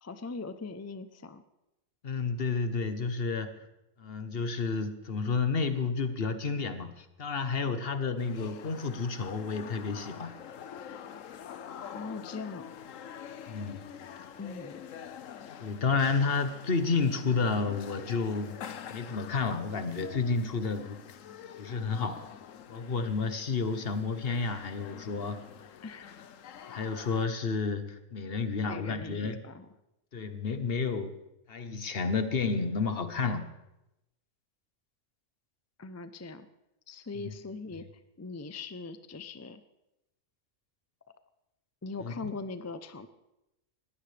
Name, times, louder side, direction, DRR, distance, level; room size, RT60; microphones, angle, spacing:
voice 1, 0.0-1.4 11.9-12.7 14.4-14.8 25.8-26.2 28.6-29.7 35.8-36.5 36.9-37.9 38.2-39.6 41.8-43.1, left 4 dB, 25° left, 11 dB, 0.3 m, -41 dB
voice 2, 2.0-3.7 4.0-10.3 13.5-13.8 15.6-18.6 18.9-21.0 21.6-22.2 22.7-25.4 26.7-29.4 30.1-31.1 31.5-33.5 42.0-42.1, left 4 dB, 50° left, 9 dB, 1.2 m, -31 dB
sound 1, 8.2-27.3, left 8 dB, 85° left, 1.2 m, -46 dB
20.0 x 15.5 x 3.4 m, 0.91 s
omnidirectional pair, 1.3 m